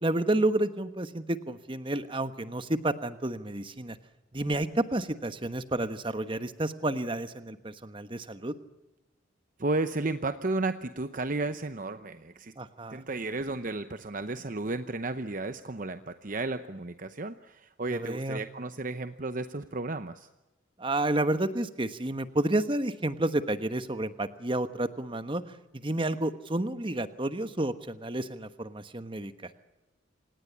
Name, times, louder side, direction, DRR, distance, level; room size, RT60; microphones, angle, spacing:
voice 1, 0.0-4.0 4.3-8.5 12.6-13.0 17.9-18.4 20.8-25.4 25.7-29.5, right 1 dB, 25° right, 11 dB, 1.2 m, -30 dB
voice 2, 9.6-12.5 12.9-20.3, right 2 dB, 40° right, 10 dB, 0.8 m, -33 dB
27.5 x 18.5 x 8.5 m, 1.0 s
head